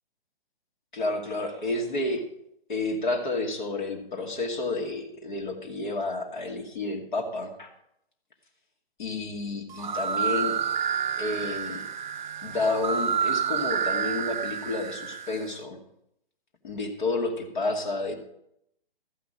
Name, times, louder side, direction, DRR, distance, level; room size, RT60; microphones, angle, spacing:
voice 1, 0.9-2.2 2.7-7.7 9.0-10.6 11.2-11.9 12.4-15.8 16.6-18.2, left 2 dB, 55° left, 3 dB, 2.5 m, -30 dB
sound 1, 9.7-15.5, right 7 dB, 50° right, 0.5 m, -29 dB
14.0 x 5.9 x 8.5 m, 0.77 s
figure-of-eight pair, 130°, 29 cm